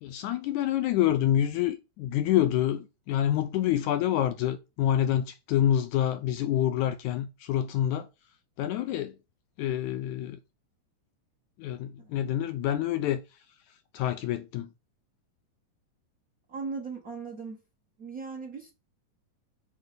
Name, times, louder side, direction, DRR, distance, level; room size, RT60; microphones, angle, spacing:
voice 1, 0.0-8.1 8.6-9.1 9.6-10.4 11.6-13.2 13.9-14.7, left 11 dB, 80° left, 1.8 m, -27 dB
voice 2, 12.0-12.3 16.5-17.6 18.0-18.7, right 4 dB, 60° right, 0.8 m, -38 dB
8.7 x 3.9 x 6.8 m
omnidirectional pair, 4.0 m